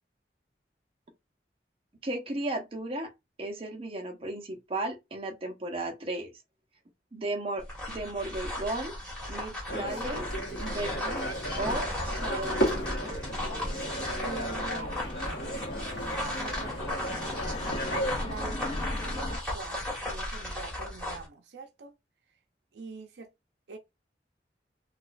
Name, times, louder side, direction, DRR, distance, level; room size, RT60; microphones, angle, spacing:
voice 1, 2.0-3.1 3.4-6.3 7.1-8.9 9.3-10.3 10.6-11.3 11.6-13.2, right 2 dB, 30° right, 0.7 m, -35 dB
sound 1, 7.6-21.3, left 1 dB, 5° left, 1.4 m, -36 dB
sound 2, 9.7-18.2, equal, 85° left, 1.1 m, -34 dB
sound 3, 12.2-19.4, left 2 dB, 30° left, 0.4 m, -40 dB
voice 2, 14.2-14.9 16.4-17.5 18.2-21.9 22.7-23.3 23.7-23.8, right 4 dB, 70° right, 0.5 m, -44 dB
4.1 x 2.2 x 2.5 m
head